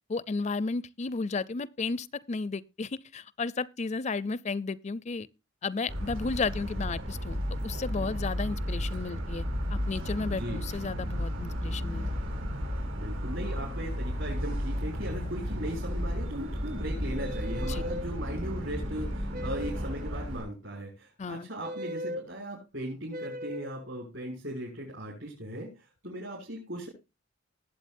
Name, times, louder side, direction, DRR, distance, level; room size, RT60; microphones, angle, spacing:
voice 1, 0.1-5.3 5.6-9.4 9.7-12.3 17.6-17.8 21.2-21.5, left 4 dB, 35° left, 0.4 m, -33 dB
Motor vehicle (road) / Siren, 5.9-20.4, equal, 90° right, 6.5 m, -33 dB
voice 2, 12.9-25.7 26.0-26.9, right 1 dB, 70° right, 6.8 m, -38 dB
sound 1, 17.2-18.1 19.3-19.9 21.6-22.3 23.1-23.7, equal, 40° right, 0.6 m, -38 dB
20.0 x 7.9 x 2.6 m
head